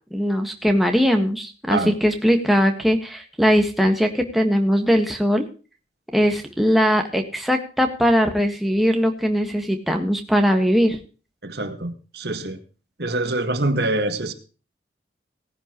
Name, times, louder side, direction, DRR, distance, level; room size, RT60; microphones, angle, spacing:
voice 1, 0.1-5.4 6.1-11.0, equal, ahead, 1.7 m, -20 dB
voice 2, 11.4-12.6 13.0-14.3, right 2 dB, 65° right, 1.8 m, -25 dB
18.0 x 10.5 x 3.1 m
head